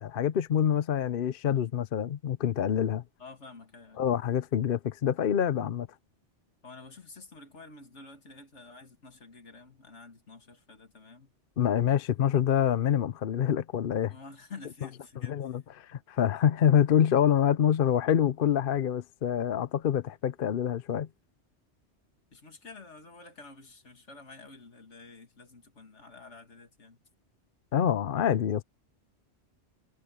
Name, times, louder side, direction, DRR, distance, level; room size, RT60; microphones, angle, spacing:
voice 1, 0.0-3.0 4.0-5.9 11.6-14.1 15.2-21.1 27.7-28.6, left 9 dB, 55° left, 0.8 m, -26 dB
voice 2, 3.2-4.1 6.6-11.3 14.1-15.6 22.3-27.0, left 3 dB, 85° left, 2.6 m, -49 dB
omnidirectional pair, 1.2 m